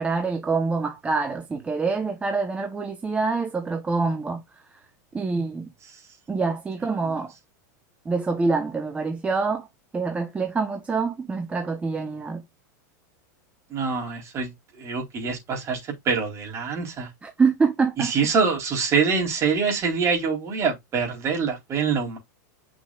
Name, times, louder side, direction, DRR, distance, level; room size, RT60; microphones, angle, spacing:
voice 1, 0.0-4.4 5.1-5.7 6.3-7.3 8.0-9.7 9.9-12.4 17.2-18.1, right 4 dB, 15° right, 1.1 m, -25 dB
voice 2, 13.7-17.1 18.0-22.2, right 5 dB, 30° right, 3.9 m, -25 dB
8.8 x 6.2 x 2.4 m
supercardioid pair, 135°, 10 cm